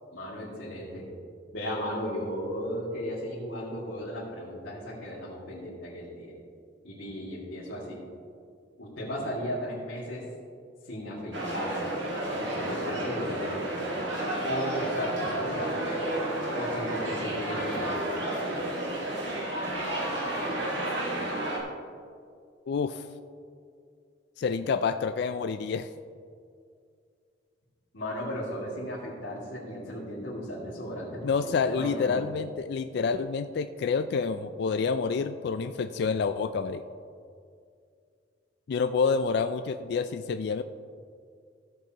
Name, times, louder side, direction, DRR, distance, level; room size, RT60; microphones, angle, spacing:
voice 1, 0.1-1.1 1.5-6.3 6.8-8.0 8.8-10.2 10.8-11.9 12.4-13.7 14.4-16.0 16.5-18.0 27.9-32.2, equal, 80° left, -9 dB, 2.3 m, -35 dB
sound 1, 11.3-21.6, right 1 dB, 70° right, 1.9 m, -31 dB
voice 2, 22.7-23.0 24.4-25.9 31.2-36.8 38.7-40.6, left 5 dB, 60° left, 9 dB, 0.3 m, -28 dB
15.0 x 7.9 x 2.9 m, 2.3 s
head